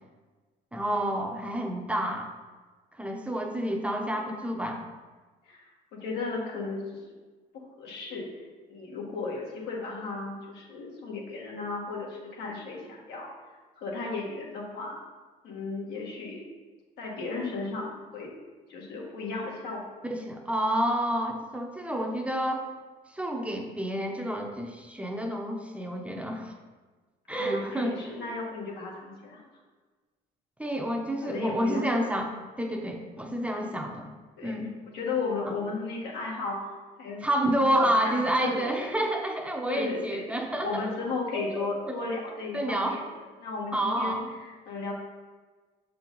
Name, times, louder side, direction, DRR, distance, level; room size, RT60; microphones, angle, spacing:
voice 1, 0.7-2.3 2.9-4.8 20.0-22.7 23.1-26.5 27.3-28.0 30.6-32.3 32.6-34.1 34.4-34.7 35.5-35.6 37.2-40.9 41.3-42.0 42.5-43.0 43.7-44.3, right 1 dB, 5° right, 1 dB, 0.7 m, -29 dB
voice 2, 5.9-7.0 7.5-8.3 8.7-13.3 13.8-15.0 15.4-16.5 17.0-18.3 18.7-19.8 27.3-29.4 31.2-31.9 33.5-33.8 34.4-34.6 34.9-36.6 37.0-37.2 38.0-38.9 39.7-40.2 40.6-43.0 43.4-44.9, left 3 dB, 85° left, -2 dB, 1.7 m, -35 dB
6.4 x 4.6 x 3.9 m, 1.3 s
cardioid pair, 110°, 17 cm